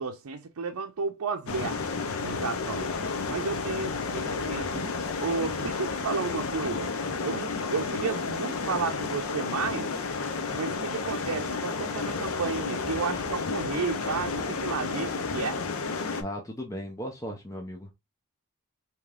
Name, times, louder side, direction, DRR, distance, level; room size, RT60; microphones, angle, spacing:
voice 1, 0.0-1.8 2.2-2.9 3.3-4.9 5.2-6.9 7.2-9.9 10.5-15.6, right 5 dB, 90° right, 0.5 m, -32 dB
sound 1, 1.5-16.2, left 4 dB, 80° left, 0.6 m, -31 dB
voice 2, 16.2-17.9, equal, 15° left, 0.6 m, -36 dB
4.9 x 2.9 x 2.4 m
head